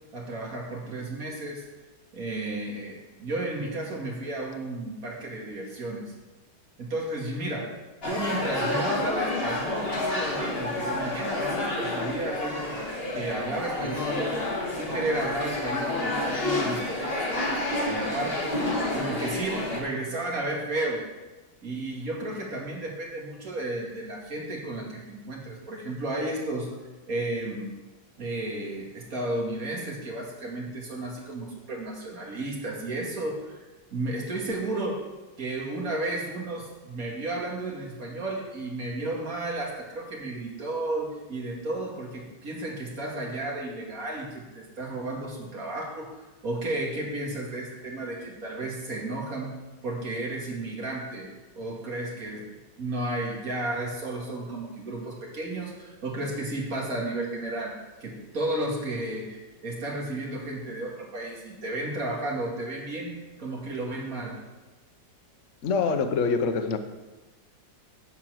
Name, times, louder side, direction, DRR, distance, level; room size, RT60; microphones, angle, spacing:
voice 1, 0.1-1.6 2.1-6.1 6.8-7.7 8.0-12.8 13.1-17.6 17.9-18.6 18.9-21.0 21.6-26.7 27.1-27.7 28.2-35.0 35.4-49.5 49.8-51.3 51.6-52.5 52.8-57.7 58.0-64.4, right 2 dB, 50° right, -2 dB, 2.5 m, -33 dB
sound 1, 8.0-19.8, left 2 dB, 35° left, 2.0 m, -29 dB
voice 2, 65.6-66.8, left 5 dB, 55° left, 6 dB, 1.0 m, -25 dB
11.0 x 4.5 x 7.7 m, 1.1 s
omnidirectional pair, 1.9 m